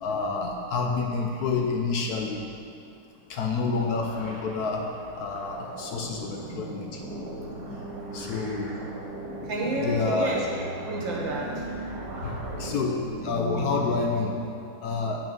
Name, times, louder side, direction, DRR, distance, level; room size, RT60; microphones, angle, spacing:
voice 1, 0.0-2.4 3.3-4.8 5.2-6.9 8.1-8.7 9.8-10.3 12.2-13.0 13.2-14.3 14.8-15.2, left 4 dB, 65° left, 1 dB, 1.1 m, -28 dB
sound 1, 3.6-12.7, right 1 dB, 35° right, 2.5 m, -42 dB
sound 2, 7.0-14.4, right 2 dB, 50° right, 1.5 m, -37 dB
voice 2, 9.4-10.5 10.9-11.7 11.9-12.0, right 1 dB, 80° right, -3 dB, 2.2 m, -30 dB
8.6 x 6.0 x 5.3 m, 2.5 s
omnidirectional pair, 2.0 m